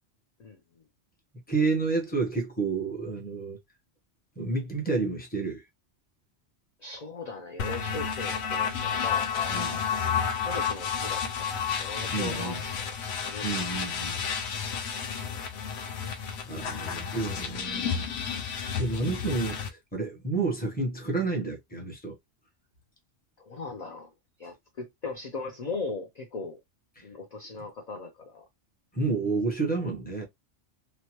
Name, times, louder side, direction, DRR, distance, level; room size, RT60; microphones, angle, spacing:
voice 1, 0.4-0.8 6.8-10.0 10.4-13.0 13.3-13.6 23.4-24.1 24.4-26.6 27.0-28.5, left 3 dB, 50° left, 0.5 m, -38 dB
voice 2, 1.5-3.6 4.4-5.6 9.5-9.8 12.1-12.6 13.4-14.2 16.5-18.1 18.8-22.2 27.0-27.1 28.9-30.2, right 3 dB, 10° left, 0.8 m, -30 dB
sound 1, 7.6-19.7, left 7 dB, 70° left, 0.8 m, -31 dB
3.0 x 2.1 x 2.9 m
omnidirectional pair, 1.2 m